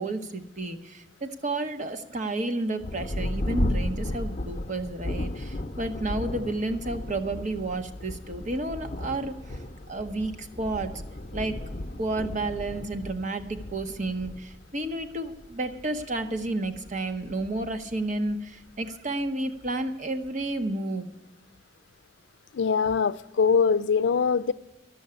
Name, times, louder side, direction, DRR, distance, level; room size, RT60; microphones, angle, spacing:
voice 1, 0.0-9.6 9.9-11.0 11.3-11.6 12.0-21.1, right 2 dB, 45° right, 1.0 m, -31 dB
Thunder, 2.8-18.9 19.6-19.7 20.3-20.7, left 1 dB, 40° left, 0.8 m, -35 dB
voice 2, 22.5-24.5, left 5 dB, 90° left, 0.4 m, -23 dB
12.5 x 6.3 x 9.6 m
head